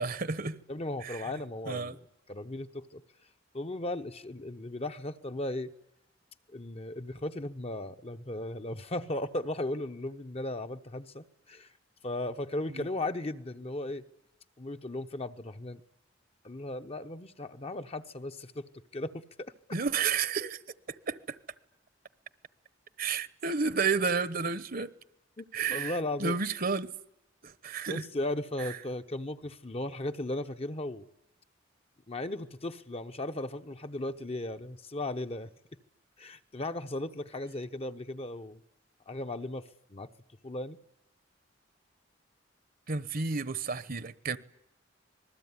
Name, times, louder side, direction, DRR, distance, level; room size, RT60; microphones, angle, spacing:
voice 1, 0.0-0.6 1.0-1.3 1.7-1.9 12.7-12.9 19.7-20.6 21.1-21.4 23.0-24.9 25.5-26.9 27.4-28.0 42.9-44.4, right 5 dB, 50° right, 1.1 m, -31 dB
voice 2, 0.7-2.0 2.3-3.0 3.5-5.7 6.5-11.7 12.0-14.0 14.6-15.8 16.4-19.5 25.4-25.5 25.7-26.4 27.9-31.1 32.1-35.5 36.2-38.6 39.1-40.1 40.4-40.8, left 1 dB, 30° left, 1.0 m, -36 dB
26.5 x 20.5 x 9.7 m
head